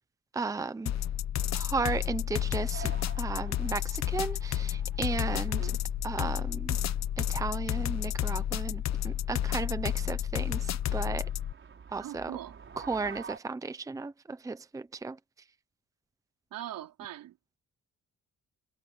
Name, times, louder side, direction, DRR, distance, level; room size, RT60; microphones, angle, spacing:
voice 1, 0.3-0.9 1.5-2.9 3.2-5.6 6.0-6.8 7.3-10.6 10.9-11.3 11.9-12.3 12.9-15.2, right 4 dB, 10° right, 0.7 m, -34 dB
sound 1, 0.9-11.5, left 11 dB, 55° left, 1.1 m, -31 dB
Bird / Stream, 1.5-10.5, left 13 dB, 85° left, 6.5 m, -58 dB
sound 2, 2.7-13.4, right 6 dB, 40° right, 4.8 m, -50 dB
voice 2, 5.4-5.8 11.9-12.6 16.5-17.4, right 12 dB, 85° right, 4.1 m, -41 dB
cardioid pair, 135°, 33 cm